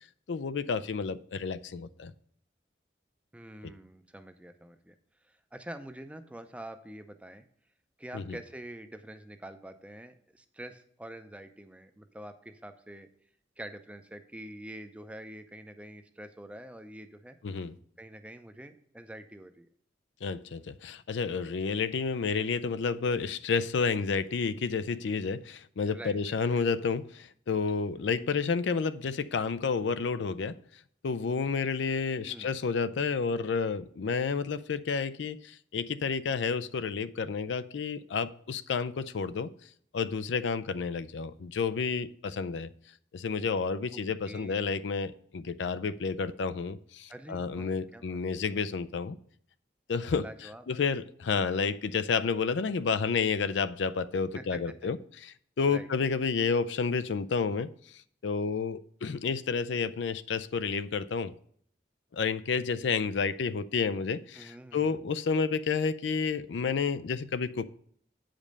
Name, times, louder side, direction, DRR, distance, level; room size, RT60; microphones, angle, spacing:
voice 1, 0.3-2.1 3.6-3.7 8.1-8.4 17.4-17.7 20.2-30.6 31.0-39.5 39.9-42.7 43.1-49.2 49.9-61.3 62.1-67.6, left 5 dB, 85° left, 0.4 m, -30 dB
voice 2, 3.3-4.9 5.2-7.4 8.0-13.1 13.6-17.4 18.0-19.7 25.9-26.6 32.3-32.5 44.3-44.7 47.1-48.4 50.2-50.6 54.3-54.6 55.7-55.9 64.3-65.0, right 1 dB, 5° right, 0.5 m, -46 dB
8.5 x 5.2 x 5.3 m
head